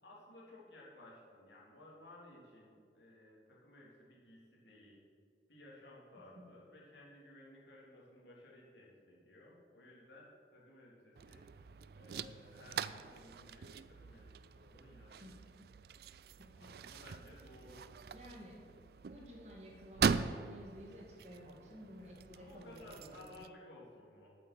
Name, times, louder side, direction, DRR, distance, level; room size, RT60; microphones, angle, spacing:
voice 1, 0.0-5.0 5.5-11.5 12.0-15.3 16.5-17.9 22.0-24.4, left 1 dB, 80° left, -4 dB, 3.2 m, -57 dB
sound 1, 11.2-23.5, right 6 dB, 60° right, 0.3 m, -41 dB
voice 2, 15.2-15.7 16.4-16.7 17.5-17.6 18.1-23.4, equal, 40° right, -2 dB, 2.2 m, -54 dB
8.5 x 8.3 x 7.6 m, 2.2 s
head